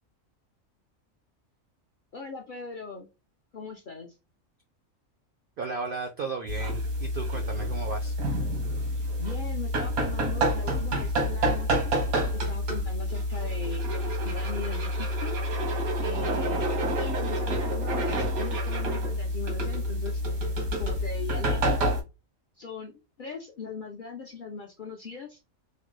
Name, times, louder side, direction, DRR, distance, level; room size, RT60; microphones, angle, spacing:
voice 1, 2.1-3.1 3.5-4.1 9.0-11.8 12.3-15.3 16.0-16.7 17.0-20.2 20.8-21.8 22.6-25.4, left 5 dB, 60° left, 1 dB, 0.5 m, -40 dB
voice 2, 5.6-8.1, right 4 dB, 70° right, 4 dB, 0.5 m, -35 dB
sound 1, 6.5-22.0, equal, 90° right, 1.3 m, -28 dB
3.2 x 2.0 x 3.0 m, 0.27 s
omnidirectional pair, 1.5 m